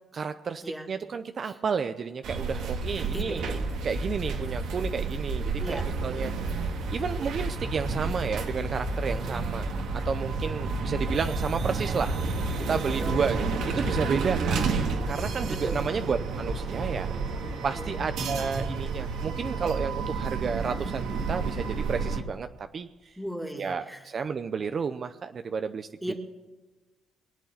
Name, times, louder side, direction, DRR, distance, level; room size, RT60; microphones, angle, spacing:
voice 1, 0.1-3.6 3.8-12.4 12.7-14.6 15.1-17.1 17.6-23.2 23.5-26.2, right 6 dB, 50° right, 9 dB, 0.7 m, -32 dB
sound 1, 2.2-22.2, right 3 dB, 80° right, 2.1 m, -30 dB
voice 2, 2.9-3.6 5.6-5.8 9.2-9.5 12.8-13.2 15.5-15.8 17.8-18.0 23.2-24.0 26.0-26.1, equal, ahead, 3 dB, 2.5 m, -37 dB
23.0 x 8.3 x 7.4 m, 1.2 s
cardioid pair, 90°, 0 cm